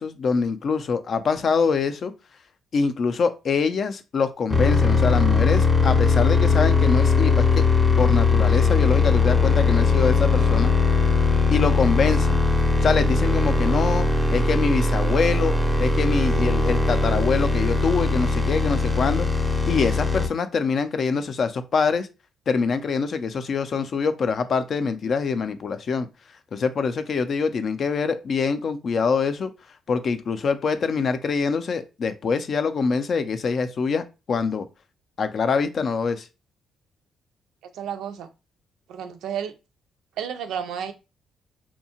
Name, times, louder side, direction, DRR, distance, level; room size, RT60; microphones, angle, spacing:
voice 1, 0.0-2.1 2.7-7.6 8.0-10.7 11.5-12.4 12.8-15.5 15.8-19.3 19.7-22.1 22.5-26.1 26.5-29.5 29.9-34.7 35.2-36.3, left 5 dB, 50° left, 0.4 m, -24 dB
sound 1, 4.5-20.3, left 3 dB, 5° left, 0.6 m, -20 dB
voice 2, 37.7-38.3 38.9-39.5 40.2-40.9, right 8 dB, 85° right, 0.4 m, -31 dB
2.7 x 2.1 x 2.8 m
cardioid pair, 90°, 0 cm